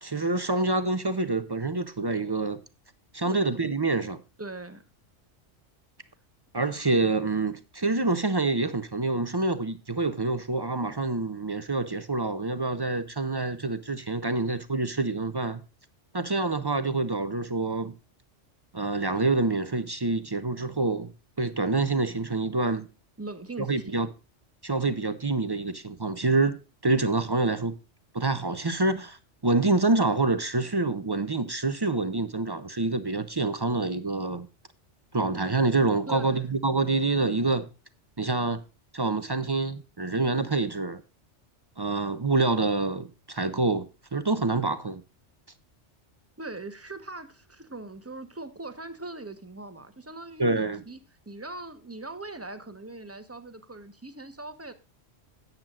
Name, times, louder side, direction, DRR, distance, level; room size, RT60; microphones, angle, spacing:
voice 1, 0.0-2.6 3.1-4.2 6.5-15.6 16.1-17.9 18.7-22.9 23.7-24.1 24.6-27.7 28.1-29.2 29.4-34.5 35.1-37.7 38.2-38.6 38.9-41.0 41.8-45.0 50.4-50.8, right 3 dB, 30° right, 0.5 m, -27 dB
voice 2, 3.2-3.6 4.4-4.8 23.2-24.0 36.1-36.5 46.4-51.0 51.3-54.7, right 2 dB, 15° right, 0.9 m, -40 dB
13.5 x 9.1 x 2.4 m
omnidirectional pair, 1.2 m